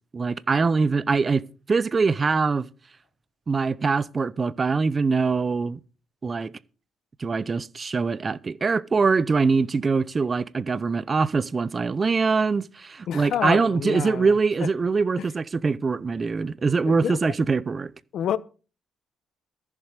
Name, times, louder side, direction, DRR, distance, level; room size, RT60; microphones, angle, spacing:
voice 1, 0.1-1.4 1.7-2.7 3.5-5.8 6.2-6.5 7.2-17.9, right 4 dB, 35° right, 0.7 m, -23 dB
voice 2, 13.1-14.3 14.6-14.7 15.2-15.3 16.8-17.3 18.1-18.4, left 10 dB, 70° left, 1.0 m, -28 dB
14.5 x 7.3 x 6.7 m
cardioid pair, 90°, 0 cm